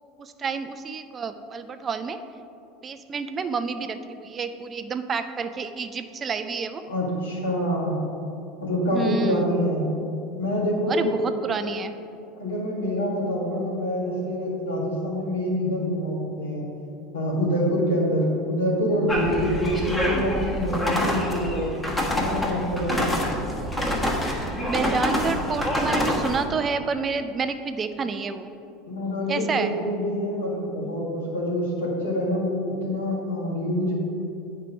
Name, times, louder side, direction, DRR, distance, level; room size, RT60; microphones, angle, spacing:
voice 1, 0.2-2.2 2.8-6.8 8.9-9.5 10.9-11.9 24.7-28.5 29.3-29.7, right 5 dB, 30° right, 9 dB, 0.5 m, -29 dB
voice 2, 6.9-8.0 8.6-9.9 10.4-11.1 12.4-16.6 17.1-21.8 22.1-23.1 28.9-33.9, equal, 85° left, -4 dB, 1.9 m, -26 dB
sound 1, 19.1-26.4, left 1 dB, 15° left, 1.4 m, -26 dB
8.9 x 4.5 x 5.1 m, 2.7 s
hypercardioid pair, 80°, 0 cm